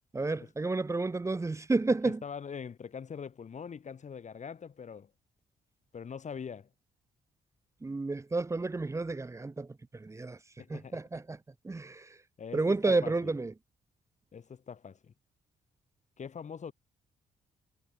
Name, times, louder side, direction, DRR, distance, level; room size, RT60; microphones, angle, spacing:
voice 1, 0.1-2.2 7.8-9.7 10.0-10.4 10.7-11.4 11.6-12.0 12.5-13.5, right 3 dB, 20° right, 0.9 m, -30 dB
voice 2, 2.0-5.1 5.9-6.7 10.6-11.0 12.4-13.4 14.3-15.1 16.2-16.7, left 6 dB, 50° left, 8.0 m, -43 dB
cardioid pair, 95°, 16 cm